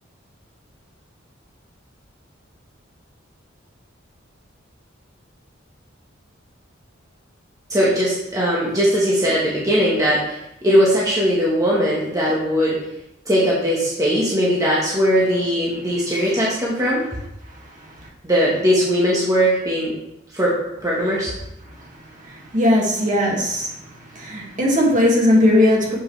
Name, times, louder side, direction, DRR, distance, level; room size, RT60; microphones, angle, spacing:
voice 1, 7.7-12.8 13.3-17.0 18.2-19.9 20.3-20.5 20.8-21.3, equal, 20° right, -6 dB, 1.2 m, -19 dB
voice 2, 22.3-23.7 24.1-26.0, left 1 dB, 40° right, -4 dB, 1.9 m, -18 dB
7.2 x 5.8 x 3.2 m, 0.87 s
head